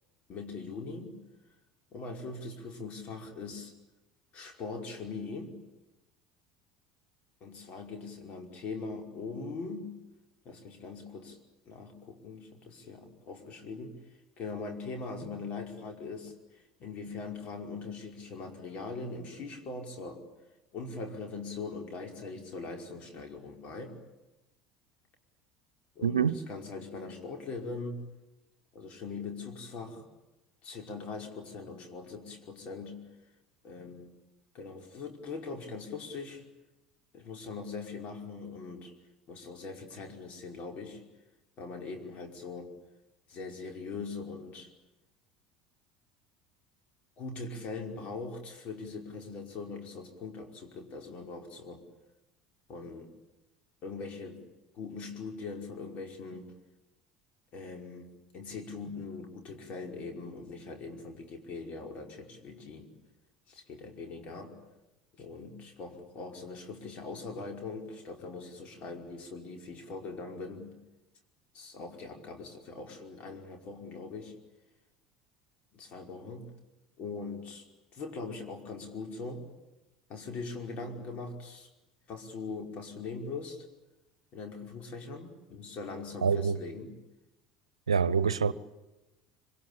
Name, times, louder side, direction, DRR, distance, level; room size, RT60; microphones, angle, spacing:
voice 1, 0.3-1.2 1.9-3.7 4.3-5.6 7.4-10.0 10.5-11.4 11.7-14.0 14.4-20.2 20.7-24.0 26.0-28.0 28.7-30.1 30.6-33.0 33.6-34.1 34.5-36.4 37.1-38.9 39.3-41.0 41.6-42.7 43.3-44.7 47.2-51.9 52.7-53.1 53.8-54.4 54.7-56.5 57.5-62.9 63.5-64.6 65.2-70.7 71.5-74.4 75.7-76.5 77.0-77.7 77.9-79.5 80.1-81.7 82.1-83.7 84.3-86.9, left 4 dB, 50° left, 5.3 m, -41 dB
voice 2, 26.0-26.4 86.2-86.6 87.9-88.5, right 6 dB, 85° right, 0.9 m, -26 dB
26.0 x 25.5 x 8.9 m
hypercardioid pair, 70°, 3 cm